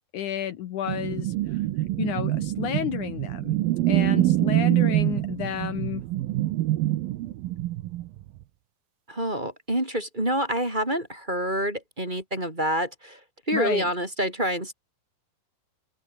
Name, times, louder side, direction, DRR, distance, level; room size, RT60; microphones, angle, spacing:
voice 1, 0.1-1.6 2.0-3.6 3.9-6.0 13.5-13.9, left 10 dB, 65° left, 2.1 m, -31 dB
sound 1, 0.9-8.3, right 16 dB, 75° right, 2.6 m, -25 dB
voice 2, 9.1-13.2 13.5-14.7, right 1 dB, 10° right, 4.2 m, -27 dB
omnidirectional pair, 4.7 m